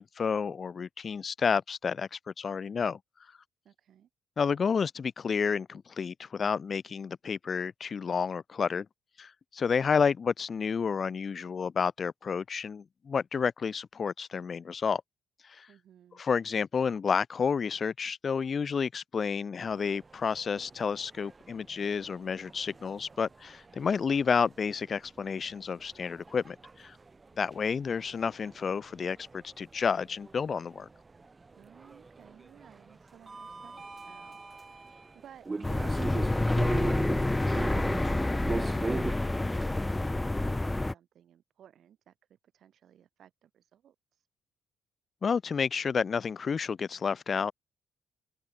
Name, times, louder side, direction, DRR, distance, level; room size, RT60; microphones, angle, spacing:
voice 1, 0.0-3.0 4.4-8.9 9.2-15.0 15.5-15.7 16.2-27.0 27.4-30.9 45.2-47.5, left 6 dB, 45° left, 0.9 m, -30 dB
voice 2, 3.6-4.1 15.7-16.2 31.5-34.4 34.8-37.7 38.2-44.3, right 10 dB, 65° right, 4.2 m, -57 dB
sound 1, 19.7-39.1, right 3 dB, 25° right, 2.1 m, -42 dB
sound 2, 35.6-40.9, left 2 dB, 15° left, 0.3 m, -28 dB
cardioid pair, 90°, 0 cm